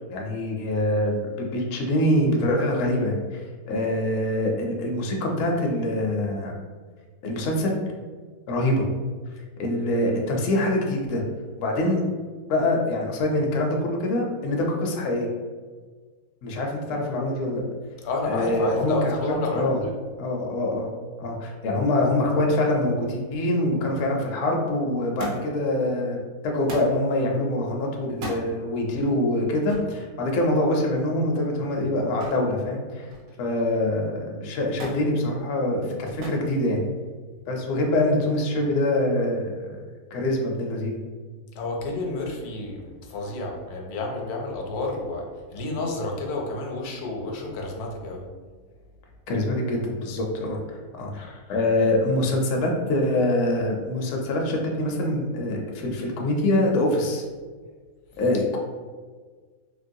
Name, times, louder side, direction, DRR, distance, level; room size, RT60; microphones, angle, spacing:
voice 1, 0.1-3.4 3.7-6.6 7.2-7.7 8.5-8.9 9.6-11.2 11.6-12.0 12.5-15.3 16.4-17.6 18.3-19.8 20.2-20.9 21.2-33.1 33.4-36.8 37.5-39.8 40.1-41.0 49.3-50.6 51.0-57.2 58.2-58.6, left 1 dB, 65° left, 0 dB, 0.8 m, -24 dB
voice 2, 18.0-19.9 41.5-48.3, left 2 dB, 85° left, 1 dB, 1.1 m, -30 dB
Thump thud, 25.2-25.7 26.7-27.0 28.1-28.5 29.7-29.9 32.2-32.5 32.9-33.4 34.8-35.1 36.2-36.5 37.4-37.9 38.9-39.0, right 1 dB, 65° right, 1.0 m, -36 dB
3.0 x 2.9 x 2.6 m, 1.5 s
omnidirectional pair, 1.6 m